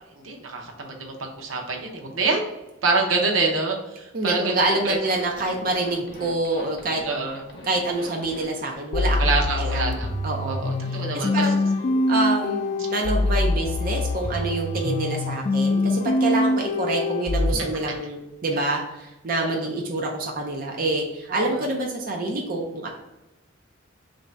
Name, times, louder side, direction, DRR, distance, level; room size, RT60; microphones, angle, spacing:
voice 1, 0.2-2.4 2.8-5.0 7.0-7.4 9.2-10.1 10.4-11.5 17.6-17.7 19.4-19.8 21.3-21.6, right 3 dB, 90° right, 1 dB, 0.7 m, -26 dB
voice 2, 4.1-7.0 7.6-9.3 9.6-11.6 12.1-22.9, right 2 dB, 45° right, 1 dB, 0.5 m, -27 dB
Zipper (clothing), 4.6-8.7, left 1 dB, 55° left, 0.7 m, -43 dB
sound 1, 8.9-17.5, left 2 dB, 40° left, 0.3 m, -24 dB
3.1 x 2.6 x 4.5 m, 0.98 s
head